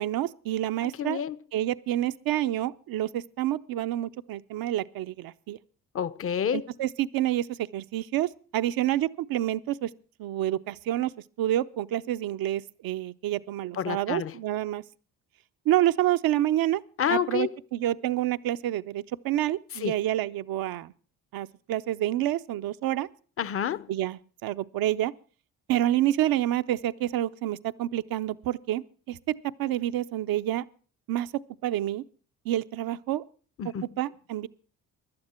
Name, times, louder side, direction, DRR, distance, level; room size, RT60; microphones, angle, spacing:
voice 1, 0.0-1.2 1.5-5.6 6.5-9.9 10.2-11.1 11.4-14.8 15.7-16.8 17.1-20.9 21.3-23.1 23.9-25.1 25.7-29.2 29.6-30.6 31.1-31.3 31.6-32.0 32.4-33.2 34.0-34.5, right 13 dB, 70° right, 0.7 m, -28 dB
voice 2, 1.0-1.4 5.9-6.6 13.7-14.3 17.0-17.5 19.8-19.9 23.4-23.9 33.6-33.8, left 9 dB, 35° left, 0.7 m, -28 dB
16.5 x 11.5 x 4.4 m
supercardioid pair, 65°, 37 cm